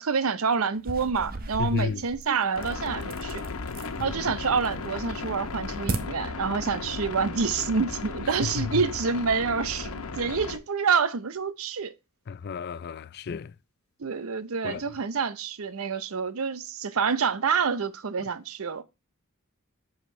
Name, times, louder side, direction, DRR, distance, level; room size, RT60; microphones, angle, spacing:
voice 1, 0.0-3.4 4.0-11.9 14.0-18.8, right 5 dB, 75° right, 0.6 m, -27 dB
sound 1, 0.7-4.0 4.4-4.9 5.3-6.0, right 3 dB, 45° right, 0.8 m, -36 dB
voice 2, 1.6-2.0 12.3-13.5 14.6-14.8, left 5 dB, 50° left, 0.3 m, -31 dB
sound 2, 2.6-10.6, left 4 dB, 80° left, 0.8 m, -35 dB
7.6 x 5.1 x 3.2 m
head